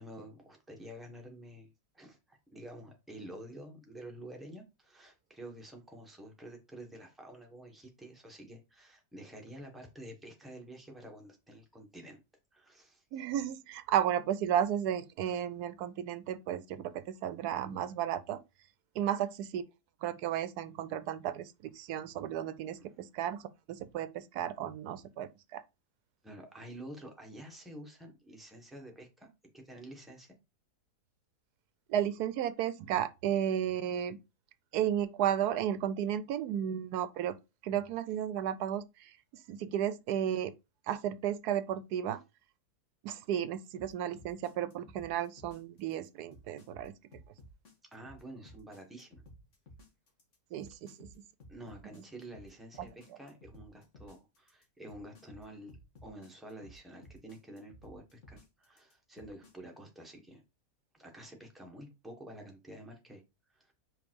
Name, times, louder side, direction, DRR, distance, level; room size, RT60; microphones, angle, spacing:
voice 1, 0.0-12.2 12.5-13.0 26.2-30.4 47.9-49.2 51.5-55.7 56.0-60.4 60.9-63.2 63.5-63.7, right 1 dB, ahead, 1.4 m, -49 dB
voice 2, 13.1-18.4 19.0-19.6 20.0-23.4 23.7-25.6 31.9-34.2 34.7-37.3 37.6-39.1 39.5-40.5 40.9-42.2 43.0-46.9 50.5-51.1 52.8-52.9, right 10 dB, 85° right, 1.1 m, -33 dB
sound 1, 43.8-59.5, equal, 50° left, 2.0 m, -55 dB
5.2 x 4.1 x 4.6 m
omnidirectional pair, 1.7 m